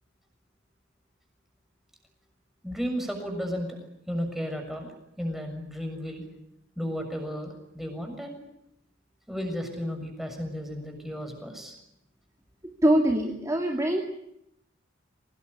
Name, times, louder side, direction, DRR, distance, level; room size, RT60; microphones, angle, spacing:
voice 1, 2.6-3.8 4.1-6.2 6.8-8.4 9.3-11.7, equal, ahead, 3 dB, 6.8 m, -34 dB
voice 2, 12.8-14.0, right 1 dB, 15° right, 2 dB, 2.5 m, -23 dB
25.0 x 19.5 x 10.0 m, 0.80 s
head